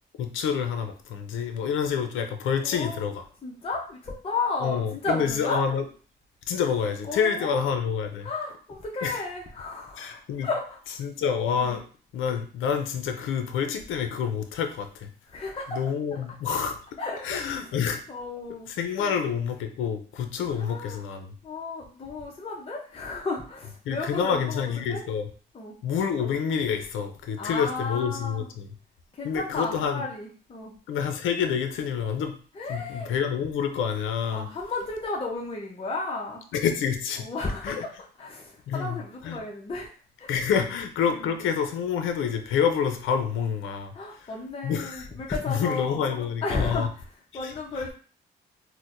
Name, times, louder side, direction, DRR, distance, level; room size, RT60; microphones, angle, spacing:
voice 1, 0.2-3.3 4.6-5.8 6.5-8.3 9.0-9.2 10.0-10.5 11.0-11.8 12.1-15.1 15.7-16.8 17.2-18.0 18.7-21.3 23.9-25.3 25.8-28.7 29.2-30.0 30.9-32.3 32.7-34.5 36.5-37.2 37.6-37.8 38.7-39.4 40.3-44.3 44.6-45.1 45.5-46.9 47.3-47.8, left 7 dB, 80° left, 7 dB, 0.5 m, -28 dB
voice 2, 2.6-3.0 3.4-5.6 7.0-7.6 8.2-11.0 11.6-11.8 15.3-15.8 17.0-17.6 18.1-18.7 19.0-19.1 20.5-21.0 21.4-25.0 25.5-25.7 27.4-28.5 29.1-30.7 32.5-33.1 34.3-36.4 37.2-37.9 38.2-39.9 40.2-40.3 41.2-41.4 43.9-46.9 47.3-47.9, left 3 dB, 30° left, -2 dB, 0.7 m, -33 dB
4.3 x 2.1 x 2.5 m, 0.41 s
cardioid pair, 90°, 20 cm